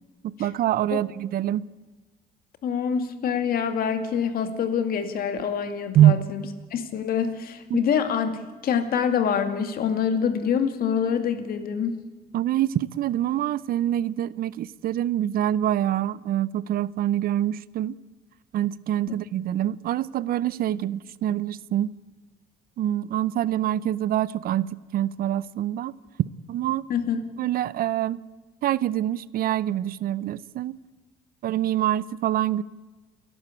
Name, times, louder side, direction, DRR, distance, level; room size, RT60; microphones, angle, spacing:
voice 1, 0.2-1.7 5.9-6.1 7.7-7.8 12.3-17.9 18.5-22.0 22.8-25.9 26.5-26.8 27.4-28.2 28.6-30.7 31.4-32.6, right 12 dB, 60° right, 0.6 m, -25 dB
voice 2, 2.6-6.4 6.7-12.0 26.9-27.2, left 7 dB, 60° left, 2.3 m, -26 dB
29.5 x 11.5 x 8.5 m
cardioid pair, 110°, 17 cm